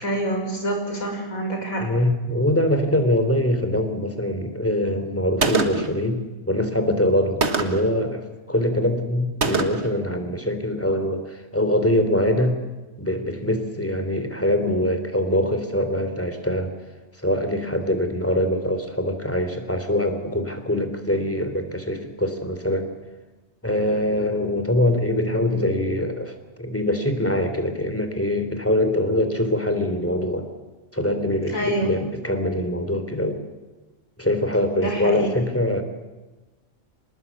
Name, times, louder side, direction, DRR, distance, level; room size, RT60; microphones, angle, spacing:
voice 1, 0.0-1.9 31.4-32.0 34.7-35.3, right 1 dB, 80° left, 2 dB, 6.2 m, -26 dB
voice 2, 1.8-12.6 13.0-16.7 17.2-22.9 23.6-30.5 30.9-33.4 34.2-35.8, left 1 dB, 10° left, 7 dB, 3.1 m, -23 dB
Gunshot gunfire, 5.4-6.0 7.4-7.9 9.4-10.0, right 4 dB, 55° right, 1.9 m, -23 dB
26.0 x 20.0 x 8.4 m, 1.2 s
omnidirectional pair, 1.4 m